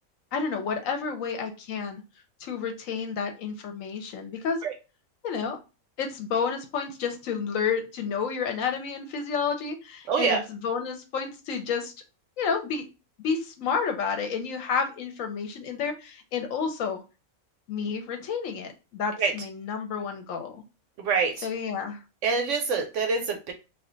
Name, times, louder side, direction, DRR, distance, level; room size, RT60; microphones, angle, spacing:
voice 1, 0.3-2.0 2.4-4.7 5.2-5.6 6.0-11.9 12.4-12.8 13.2-17.0 17.7-20.6 21.4-22.0, left 6 dB, 70° left, 5 dB, 0.9 m, -30 dB
voice 2, 10.1-10.4 19.2-19.3 21.0-21.5 22.2-23.5, right 5 dB, 65° right, 4 dB, 0.8 m, -25 dB
2.4 x 2.3 x 3.6 m, 0.30 s
omnidirectional pair, 1.5 m